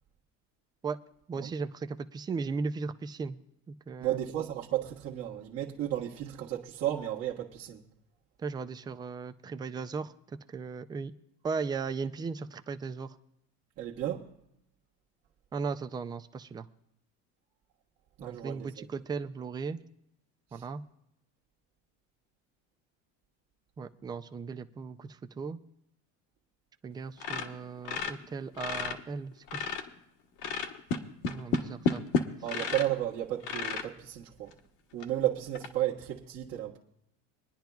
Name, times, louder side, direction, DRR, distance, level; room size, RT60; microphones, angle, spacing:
voice 1, 1.3-3.4 3.7-4.2 8.4-10.1 10.5-11.1 11.4-13.1 15.5-16.7 18.2-19.8 20.5-20.8 23.8-25.6 26.8-29.6 31.3-32.0, right 5 dB, 15° right, 0.3 m, -37 dB
voice 2, 4.0-7.8 13.8-14.3 18.2-18.9 20.5-20.6 32.4-34.6 34.9-36.8, right 12 dB, 50° right, 1.3 m, -33 dB
sound 1, 27.2-29.0 29.3-30.0 30.4-32.9 33.4-33.9 34.5-34.6 35.0-35.1 35.5-35.7, left 5 dB, 60° left, 1.3 m, -32 dB
24.5 x 10.5 x 2.3 m
cardioid pair, 135°, 34 cm